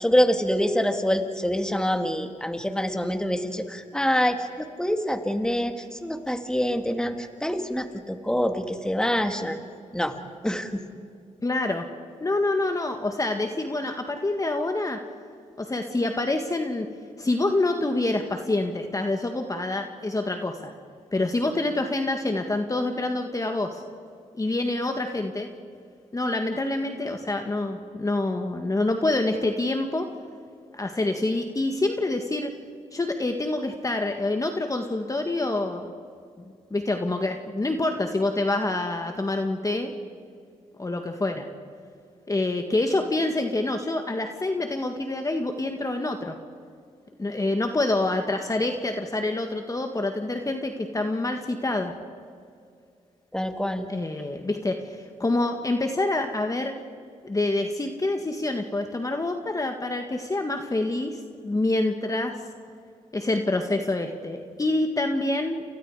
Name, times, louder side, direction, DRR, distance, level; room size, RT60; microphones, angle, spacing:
voice 1, 0.0-9.6 9.9-10.1 10.4-10.8 53.3-53.9, equal, 5° left, 6 dB, 2.3 m, -25 dB
voice 2, 11.4-11.9 12.2-15.0 15.6-16.9 17.2-20.7 21.1-23.8 24.4-25.5 26.1-30.1 30.7-32.5 32.9-35.9 36.7-39.9 40.8-41.5 42.3-46.4 47.2-51.9 53.9-56.7 57.2-62.4 63.1-65.6, left 2 dB, 25° left, 4 dB, 1.8 m, -26 dB
29.5 x 28.5 x 5.0 m, 2.3 s
cardioid pair, 75°, 14 cm